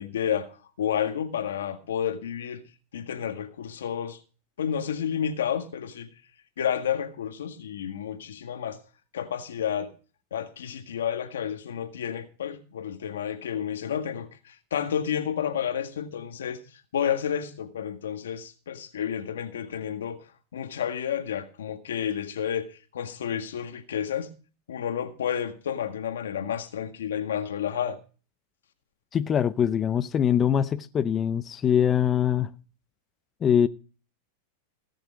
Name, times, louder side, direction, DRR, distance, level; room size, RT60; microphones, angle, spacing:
voice 1, 0.0-2.6 2.9-4.2 4.6-6.1 6.6-8.8 9.1-9.9 10.3-20.2 20.5-24.3 24.7-28.0, left 8 dB, 90° left, 1.7 m, -31 dB
voice 2, 29.1-32.5 33.4-33.7, left 9 dB, 25° left, 0.6 m, -23 dB
18.0 x 6.7 x 5.1 m
hypercardioid pair, 125°, 0 cm